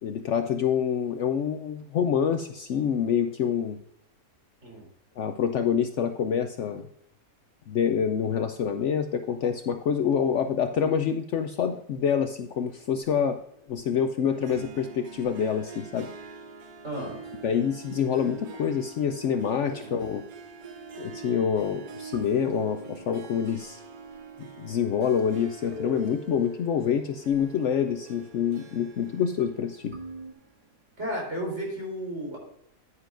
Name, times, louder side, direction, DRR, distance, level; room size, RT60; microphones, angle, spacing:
voice 1, 0.0-3.8 5.2-6.9 7.7-13.4 13.7-16.1 17.4-20.2 21.0-23.8 24.4-29.9, left 7 dB, 65° left, 8 dB, 0.8 m, -26 dB
sound 1, 12.6-30.3, equal, 30° right, 2.1 m, -48 dB
Harp, 14.3-30.8, right 6 dB, 75° right, 1.5 m, -46 dB
voice 2, 16.8-17.2 19.8-20.0 31.0-32.4, equal, 50° right, -1 dB, 3.8 m, -33 dB
9.7 x 9.7 x 2.5 m, 0.76 s
omnidirectional pair, 1.6 m